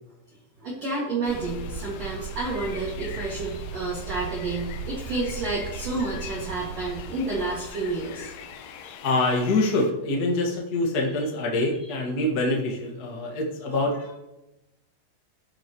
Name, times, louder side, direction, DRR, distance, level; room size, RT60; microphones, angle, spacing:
voice 1, 0.6-8.3 8.8-8.9 13.9-14.1, right 3 dB, 45° right, -5 dB, 2.7 m, -30 dB
sound 1, 1.2-9.9, left 8 dB, 75° left, 2.6 m, -43 dB
sound 2, 1.3-8.9, right 5 dB, 80° right, 2.2 m, -38 dB
voice 2, 9.0-13.9, left 2 dB, 60° left, -1 dB, 1.0 m, -25 dB
15.0 x 10.5 x 3.1 m, 0.97 s
omnidirectional pair, 5.0 m